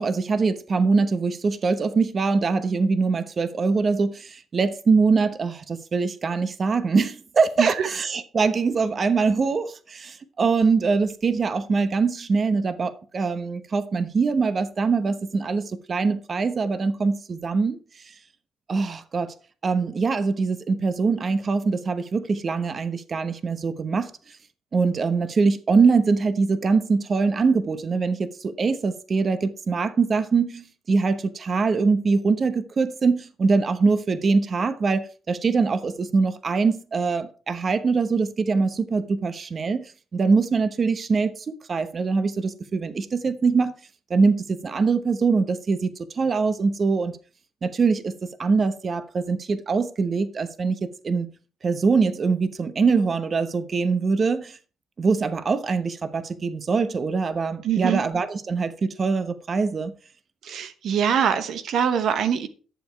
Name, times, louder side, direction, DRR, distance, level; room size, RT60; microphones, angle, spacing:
voice 1, 0.0-18.1 18.7-19.3 19.6-24.4 24.7-43.7 44.1-47.2 47.6-48.1 48.4-50.8 51.0-51.3 51.6-54.6 55.0-59.9, right 4 dB, 40° right, 1.0 m, -23 dB
voice 2, 7.6-7.9 57.6-58.0 60.4-62.5, right 8 dB, 70° right, 1.0 m, -23 dB
11.5 x 7.3 x 4.6 m
cardioid pair, 90°, 0 cm